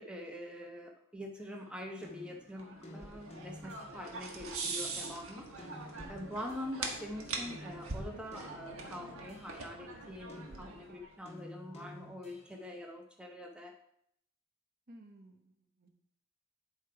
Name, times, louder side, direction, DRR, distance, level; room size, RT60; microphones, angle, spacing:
voice 1, 0.0-13.7, left 1 dB, 5° right, 1 dB, 0.7 m, -45 dB
sound 1, 1.4-4.2 4.6-7.0 7.4-12.7, left 1 dB, 30° left, 1.3 m, -53 dB
sound 2, 2.5-11.1, right 3 dB, 85° right, 1.4 m, -43 dB
voice 2, 14.9-15.9, right 1 dB, 45° right, 4 dB, 1.0 m, -56 dB
11.0 x 3.7 x 4.7 m, 0.71 s
head